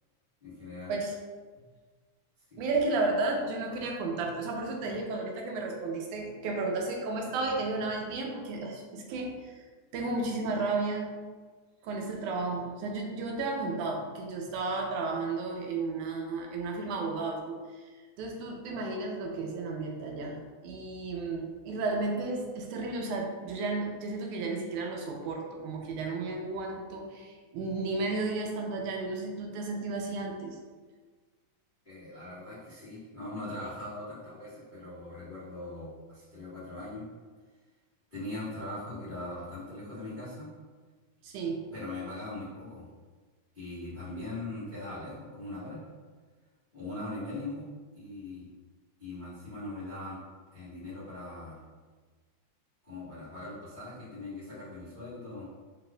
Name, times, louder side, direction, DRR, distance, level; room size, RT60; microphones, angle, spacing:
voice 1, 0.4-0.9 2.5-2.6 31.8-37.0 38.1-40.5 41.7-42.9 43.5-45.8 46.7-48.5 49.0-50.2 50.5-51.6 52.8-55.5, left 2 dB, 75° left, -11 dB, 0.4 m, -40 dB
voice 2, 2.6-9.6 9.9-11.2 11.8-17.9 18.2-30.6 41.2-41.7, right 3 dB, 80° right, 1 dB, 1.9 m, -33 dB
4.9 x 4.1 x 2.2 m, 1.4 s
omnidirectional pair, 3.6 m